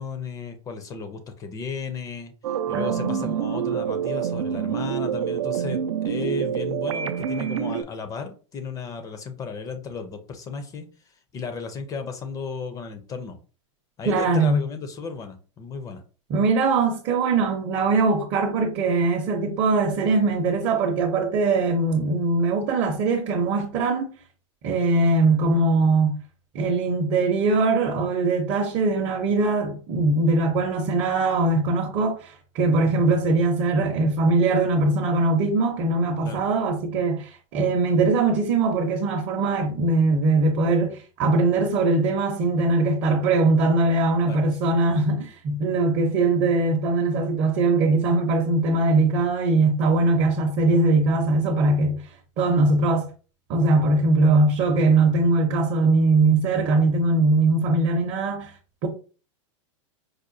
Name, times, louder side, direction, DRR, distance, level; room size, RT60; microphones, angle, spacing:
voice 1, 0.0-2.3 2.7-10.9 11.3-13.4 14.0-16.0 32.9-33.1 36.2-36.5 44.3-44.4, left 5 dB, 20° left, 0.4 m, -34 dB
sound 1, 2.4-7.8, right 8 dB, 90° right, 0.4 m, -27 dB
voice 2, 2.7-3.3 14.1-14.6 16.3-24.1 24.6-26.1 26.5-52.0 52.4-53.1 53.5-58.5 58.8-58.9, right 3 dB, 40° right, 0.6 m, -21 dB
4.8 x 2.2 x 2.6 m
supercardioid pair, 140°, 16 cm